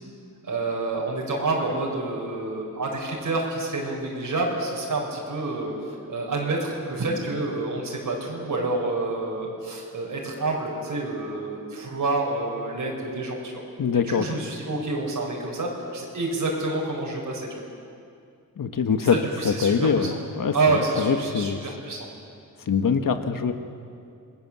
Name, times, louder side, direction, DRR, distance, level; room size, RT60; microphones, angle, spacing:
voice 1, 0.4-5.7 6.1-13.6 14.1-17.5 19.0-20.1 20.5-22.1, right 2 dB, 75° right, -2 dB, 4.8 m, -28 dB
voice 2, 13.8-14.3 18.6-19.2 19.4-21.6 22.7-23.5, left 6 dB, 80° left, 7 dB, 1.5 m, -23 dB
27.5 x 20.5 x 7.5 m, 2.5 s
wide cardioid pair, 145°, 33 cm